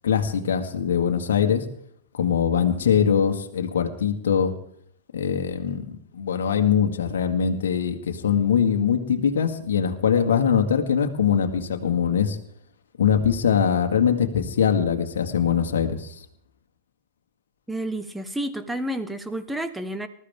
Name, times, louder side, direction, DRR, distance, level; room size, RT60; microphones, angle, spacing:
voice 1, 0.0-1.6 2.1-4.5 5.1-12.4 13.0-16.1, left 7 dB, 70° left, 5 dB, 1.9 m, -22 dB
voice 2, 17.7-20.1, right 1 dB, 5° right, 10 dB, 1.5 m, -30 dB
20.0 x 13.5 x 3.7 m, 0.68 s
hypercardioid pair, 100°, 0 cm